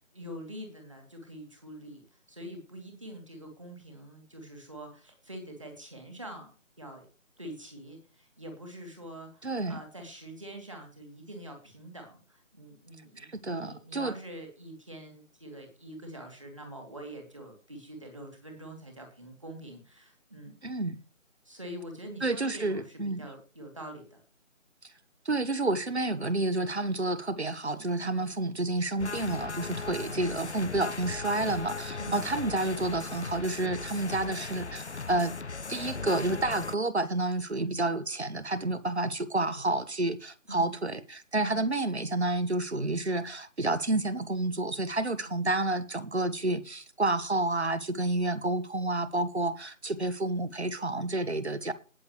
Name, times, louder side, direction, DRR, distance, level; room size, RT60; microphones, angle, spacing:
voice 1, 0.0-2.0 2.3-6.5 6.8-7.1 7.4-20.5 21.4-24.2 28.0-28.2 32.0-32.2 37.6-37.8 40.5-40.7 41.3-41.6 45.2-45.4, right 1 dB, 25° right, 2.7 m, -45 dB
voice 2, 9.4-9.8 13.2-14.2 20.6-21.0 22.2-23.3 24.8-24.9 25.2-35.4 35.7-51.7, right 2 dB, 55° right, 1.3 m, -30 dB
sound 1, 29.0-36.8, left 4 dB, 55° left, 0.6 m, -38 dB
19.5 x 7.0 x 3.1 m
figure-of-eight pair, 180°, 40 cm